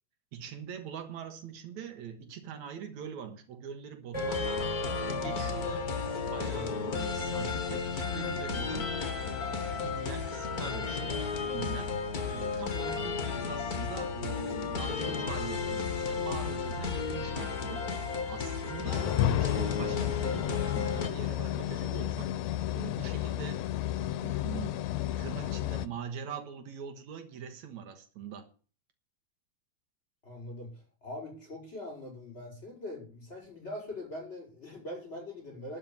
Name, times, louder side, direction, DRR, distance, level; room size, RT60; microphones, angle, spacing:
voice 1, 0.3-5.9 6.3-8.9 9.8-12.0 12.3-17.9 18.3-22.4 22.7-23.6 24.2-24.8 25.2-28.5, right 7 dB, 75° right, 2.6 m, -43 dB
sound 1, 4.1-21.1, left 5 dB, 40° left, 1.6 m, -33 dB
sound 2, 4.1-12.5, right 1 dB, 5° right, 5.4 m, -42 dB
sound 3, 18.9-25.9, left 12 dB, 75° left, 1.8 m, -32 dB
voice 2, 30.2-35.8, left 1 dB, 20° left, 7.0 m, -42 dB
12.0 x 5.7 x 9.2 m
omnidirectional pair, 3.3 m